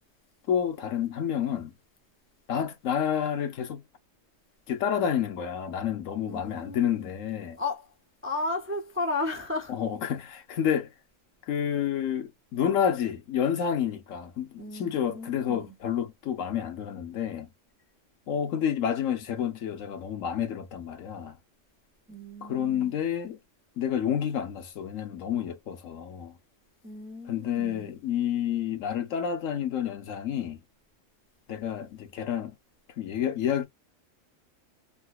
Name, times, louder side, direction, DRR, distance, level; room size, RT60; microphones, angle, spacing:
voice 1, 0.5-1.7 2.5-3.8 4.7-7.6 9.7-10.9 11.5-17.5 18.3-21.4 22.4-23.4 23.8-26.3 27.3-30.6 31.5-32.5 33.0-33.7, left 9 dB, 80° left, 1.2 m, -29 dB
voice 2, 6.2-7.1 7.6-7.9 8.2-9.8 14.6-15.7 22.1-23.0 26.8-27.9, left 2 dB, 15° right, 0.4 m, -34 dB
3.8 x 2.6 x 2.3 m
omnidirectional pair, 1.3 m